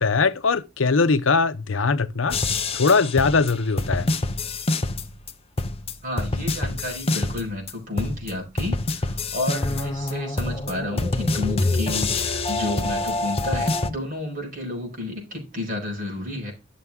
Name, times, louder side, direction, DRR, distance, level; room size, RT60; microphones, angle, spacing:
voice 1, 0.0-2.4 2.7-4.1, left 4 dB, 75° left, 0.8 m, -21 dB
sound 1, 2.3-5.3 5.6-7.7 8.0-13.9, left 2 dB, 30° left, 0.8 m, -26 dB
voice 2, 6.0-16.5, left 2 dB, 45° right, 5.0 m, -31 dB
11.0 x 6.7 x 3.6 m
head